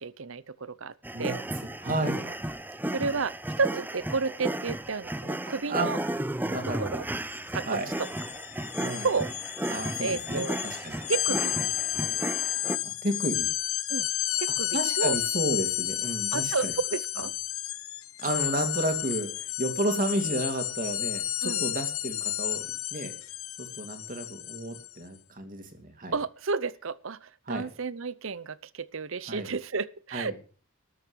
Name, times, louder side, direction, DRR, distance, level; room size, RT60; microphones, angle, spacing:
voice 1, 0.0-1.4 2.2-2.3 2.9-6.0 6.6-7.0 7.5-8.1 9.0-9.3 10.0-10.6 11.1-11.5 13.9-14.1 14.4-15.2 16.3-17.3 21.4-21.6 26.1-30.4, right 4 dB, 60° right, 0.7 m, -31 dB
sound 1, 1.0-12.8, right 1 dB, 10° right, 0.6 m, -34 dB
voice 2, 1.8-2.3 5.7-5.9 6.5-7.0 7.7-7.9 8.8-9.1 9.7-11.0 11.3-11.4 12.8-13.5 14.7-16.7 18.2-22.6 22.9-23.1 23.6-26.1 27.5-27.6 29.3-29.5 30.1-30.4, right 1 dB, 40° right, 2.6 m, -32 dB
sound 2, 7.2-7.4 7.7-24.9, left 14 dB, 70° left, 1.1 m, -32 dB
13.0 x 7.7 x 8.1 m
head